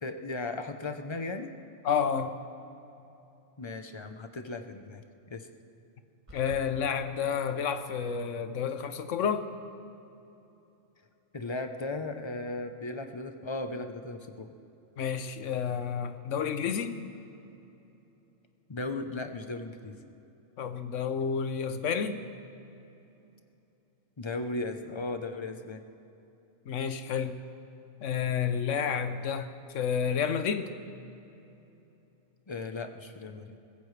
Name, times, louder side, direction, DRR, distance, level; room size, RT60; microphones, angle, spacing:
voice 1, 0.0-1.5 3.6-5.0 5.3-5.5 11.3-14.5 18.7-20.0 24.2-25.8 32.5-33.6, left 2 dB, 25° left, 7 dB, 0.7 m, -36 dB
voice 2, 1.8-2.4 6.3-9.5 15.0-17.0 20.6-22.2 26.7-27.4 28.0-30.7, left 7 dB, 70° left, 10 dB, 1.1 m, -30 dB
sound 1, 6.3-6.7, right 1 dB, 25° right, 1.9 m, -47 dB
23.0 x 15.5 x 3.3 m, 2.9 s
omnidirectional pair, 1.4 m